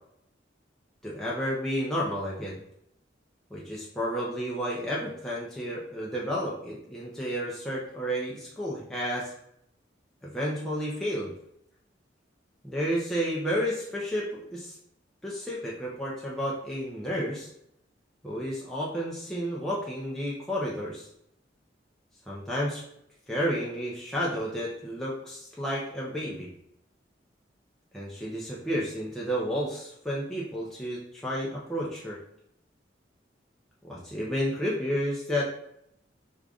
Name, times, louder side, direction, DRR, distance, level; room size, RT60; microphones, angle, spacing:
voice 1, 1.0-2.6 3.5-9.3 10.2-11.3 12.6-14.8 15.2-17.5 18.2-21.1 22.3-22.8 23.3-26.5 27.9-32.2 33.8-35.5, equal, 5° left, -6 dB, 0.5 m, -31 dB
4.9 x 2.5 x 2.3 m, 0.75 s
head